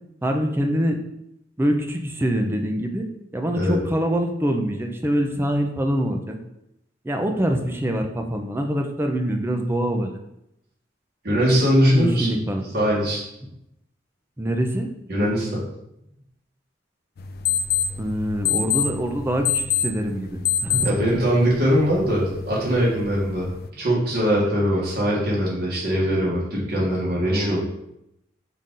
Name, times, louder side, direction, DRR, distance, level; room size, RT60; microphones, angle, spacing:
voice 1, 0.2-1.0 1.6-3.1 3.3-6.4 7.0-10.1 11.3-11.4 11.9-12.6 14.4-14.9 18.0-20.9 23.3-23.5 27.2-27.6, equal, 15° right, 3 dB, 0.4 m, -24 dB
voice 2, 11.2-12.3 12.7-13.2 15.1-15.6 20.8-23.5 23.8-27.6, equal, 55° right, -6 dB, 1.3 m, -21 dB
sound 1, 17.2-23.7, left 7 dB, 55° left, 0.3 m, -27 dB
5.6 x 2.5 x 3.7 m, 0.82 s
head